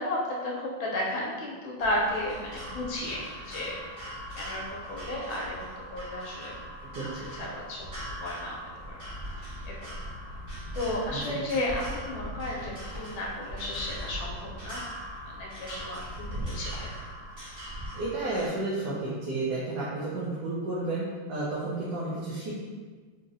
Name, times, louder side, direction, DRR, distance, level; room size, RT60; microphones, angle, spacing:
voice 1, 0.0-4.0 4.4-6.5 7.0-7.9 8.2-8.6 8.9-9.1 9.6-10.0 10.7-14.8 15.4-16.9, left 1 dB, 75° left, -2 dB, 1.3 m, -33 dB
sound 1, 1.8-18.5, equal, 35° right, 1.0 m, -40 dB
voice 2, 17.9-22.6, right 2 dB, 65° right, -8 dB, 1.0 m, -32 dB
3.9 x 2.9 x 2.5 m, 1.4 s
omnidirectional pair, 2.2 m